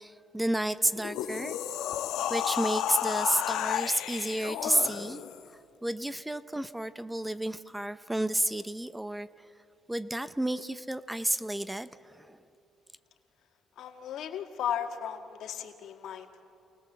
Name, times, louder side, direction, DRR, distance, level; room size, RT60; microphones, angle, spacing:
voice 1, 0.0-1.6 2.3-5.2 5.8-9.3 9.9-12.4, right 1 dB, 5° right, 14 dB, 0.6 m, -31 dB
sound 1, 0.8-5.4, left 11 dB, 90° left, 1.0 m, -32 dB
voice 2, 13.8-16.4, left 9 dB, 75° left, 5 dB, 1.9 m, -36 dB
28.0 x 19.0 x 7.4 m, 2.8 s
cardioid pair, 115°, 0 cm